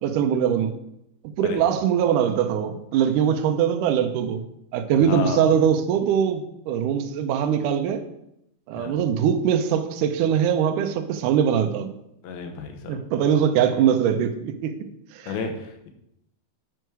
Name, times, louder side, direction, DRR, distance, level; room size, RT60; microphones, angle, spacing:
voice 1, 0.0-0.7 1.2-4.4 4.7-8.1 8.7-11.9 12.9-14.8 15.1-15.3, right 8 dB, 80° right, 6 dB, 1.8 m, -22 dB
voice 2, 4.9-5.5 8.7-9.0 12.2-13.0 15.3-15.9, left 5 dB, 80° left, 5 dB, 2.9 m, -32 dB
9.0 x 6.2 x 4.7 m, 0.80 s
omnidirectional pair, 4.4 m